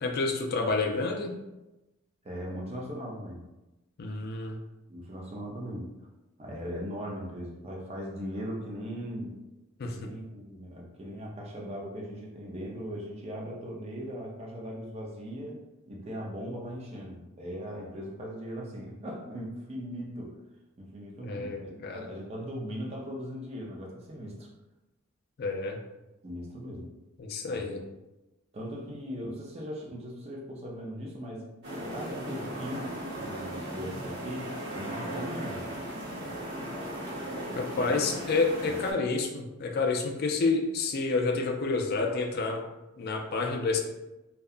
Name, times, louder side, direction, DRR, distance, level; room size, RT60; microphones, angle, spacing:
voice 1, 0.0-1.4 4.0-4.6 9.8-10.1 21.2-22.1 25.4-25.8 27.2-27.8 37.6-42.6 43.0-43.8, left 3 dB, 45° left, 3 dB, 0.3 m, -29 dB
voice 2, 2.2-3.4 4.9-5.9 6.4-9.3 9.9-20.3 20.8-24.5 26.2-26.9 27.5-27.8 28.5-31.5 31.9-35.7 37.8-38.0 38.6-38.8, equal, 30° right, -2 dB, 0.5 m, -39 dB
sound 1, 31.6-38.9, right 1 dB, 50° right, 0.9 m, -37 dB
2.7 x 2.2 x 2.4 m, 1.0 s
head